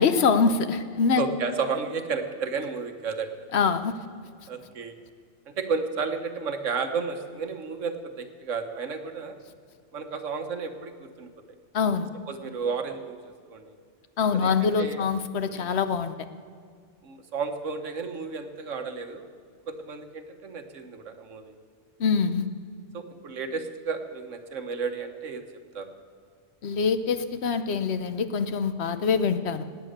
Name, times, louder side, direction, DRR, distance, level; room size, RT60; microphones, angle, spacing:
voice 1, 0.0-1.2 3.5-4.0 11.7-12.1 14.2-16.1 22.0-22.5 26.6-29.6, left 5 dB, 65° left, 11 dB, 1.0 m, -24 dB
voice 2, 1.2-3.4 4.5-5.0 5.5-9.3 9.9-11.3 12.3-13.8 14.3-15.0 15.5-15.7 17.0-19.3 19.7-21.5 22.9-25.4 25.7-25.9, right 5 dB, 85° right, 7 dB, 1.5 m, -32 dB
18.0 x 8.9 x 6.6 m, 2.1 s
omnidirectional pair, 1.3 m